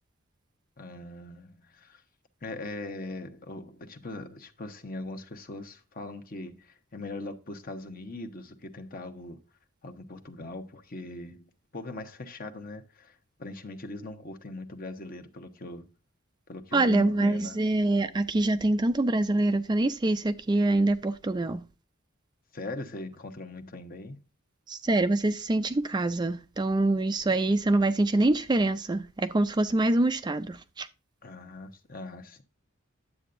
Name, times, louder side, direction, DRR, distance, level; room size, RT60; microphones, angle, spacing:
voice 1, 0.8-2.0 2.4-9.4 9.8-15.9 16.5-17.6 22.5-24.2 31.2-32.4, left 2 dB, 45° left, 1.0 m, -40 dB
voice 2, 16.7-21.7 24.7-30.9, right 2 dB, 20° right, 0.4 m, -25 dB
9.9 x 7.7 x 2.6 m
head